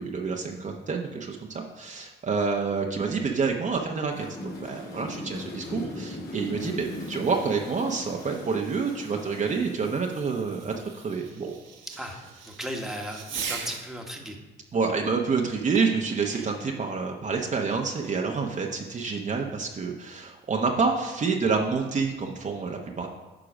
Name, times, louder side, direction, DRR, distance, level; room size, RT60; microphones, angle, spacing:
voice 1, 0.0-11.5 14.7-23.1, right 5 dB, 40° right, 1 dB, 0.9 m, -28 dB
sound 1, 4.1-9.6, left 1 dB, 50° left, 2.6 m, -38 dB
Fireworks, 6.3-14.0 15.7-16.8, right 6 dB, 70° right, 1.4 m, -42 dB
voice 2, 12.4-14.4, equal, ahead, 1 dB, 1.3 m, -36 dB
9.9 x 3.8 x 6.2 m, 1.2 s
cardioid pair, 90°, 20 cm